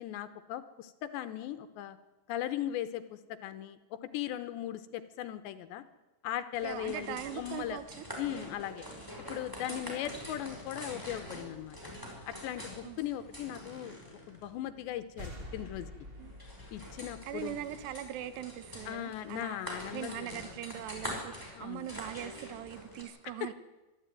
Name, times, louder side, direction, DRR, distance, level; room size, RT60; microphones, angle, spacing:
voice 1, 0.0-2.0 2.3-5.8 6.2-7.8 8.2-8.9 9.3-11.8 12.3-14.0 14.3-15.9 16.7-17.6 18.9-20.4 21.6-21.9 23.2-23.5, left 12 dB, 75° left, 11 dB, 3.1 m, -38 dB
sound 1, 6.5-23.0, equal, 5° right, 5.4 m, -45 dB
voice 2, 6.6-8.1 9.7-10.0 12.8-13.1 16.2-16.3 17.2-19.6 19.9-23.5, right 12 dB, 70° right, 13 dB, 3.2 m, -41 dB
sound 2, 15.2-18.7, left 1 dB, 20° right, 1.5 m, -48 dB
24.5 x 13.0 x 9.2 m, 1.1 s
omnidirectional pair, 5.3 m